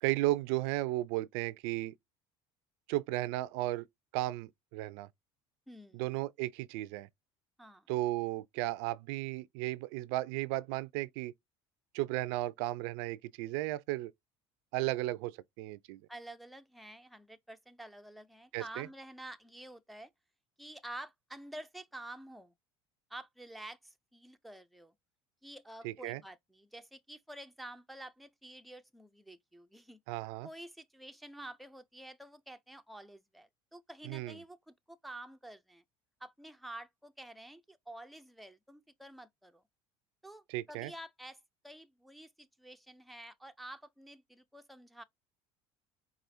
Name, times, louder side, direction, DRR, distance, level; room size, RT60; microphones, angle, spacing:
voice 1, 0.0-1.9 2.9-3.9 4.1-5.1 5.9-7.1 7.9-11.3 11.9-14.1 14.7-15.3 15.6-16.0 18.5-18.9 25.8-26.2 30.1-30.5 34.0-34.4 40.5-40.9, right 17 dB, 80° right, 0.4 m, -34 dB
voice 2, 5.7-6.1 7.6-7.9 16.1-20.1 20.6-22.5 23.1-24.9 25.4-30.0 30.4-35.8 36.2-39.6 40.2-45.0, right 1 dB, ahead, 0.4 m, -49 dB
4.8 x 2.4 x 2.6 m
supercardioid pair, 90°, 14 cm